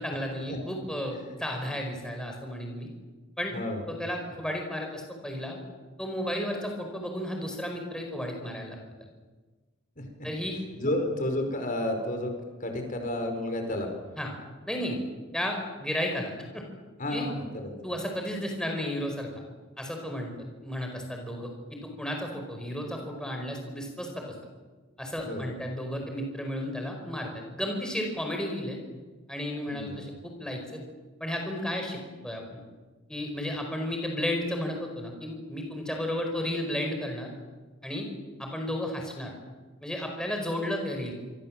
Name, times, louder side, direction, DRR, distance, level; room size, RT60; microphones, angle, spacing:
voice 1, 0.0-2.9 3.4-3.5 3.9-5.6 6.0-8.8 10.2-10.6 14.2-14.3 14.7-15.0 15.3-16.6 17.1-17.3 17.8-19.3 19.8-20.3 20.6-24.2 25.0-28.8 29.3-30.8 31.2-32.0 32.2-32.6 33.1-37.3 37.8-38.1 38.4-39.3 39.8-41.1, left 1 dB, 5° left, 2 dB, 4.9 m, -33 dB
voice 2, 10.0-10.3 10.7-12.3 12.6-13.9 17.0-17.7 25.2-25.5 29.7-30.0, left 1 dB, 40° left, 4 dB, 5.2 m, -31 dB
27.5 x 25.0 x 7.6 m, 1.3 s
head